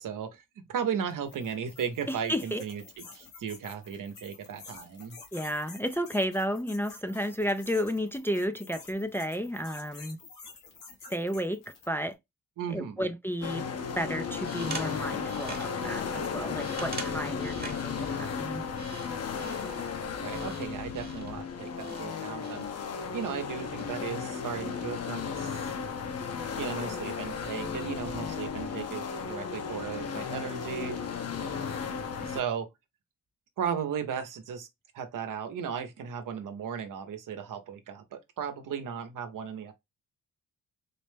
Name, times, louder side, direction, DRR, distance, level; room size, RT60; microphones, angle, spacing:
voice 1, 0.0-5.2 12.6-13.1 20.2-22.6 23.1-25.7 26.6-31.0 32.2-32.7 33.6-34.7 34.9-39.7, right 7 dB, 75° right, 0.8 m, -36 dB
sound 1, 1.1-12.0, left 4 dB, 85° left, 1.4 m, -50 dB
voice 2, 2.1-2.6 5.3-10.2 11.1-12.2 12.7-13.7 14.0-18.6, equal, 5° left, 0.4 m, -32 dB
sound 2, 13.4-32.4, left 6 dB, 50° left, 0.8 m, -35 dB
sound 3, 14.0-23.9, right 3 dB, 30° right, 1.0 m, -46 dB
4.1 x 2.1 x 3.2 m
cardioid pair, 80°, 32 cm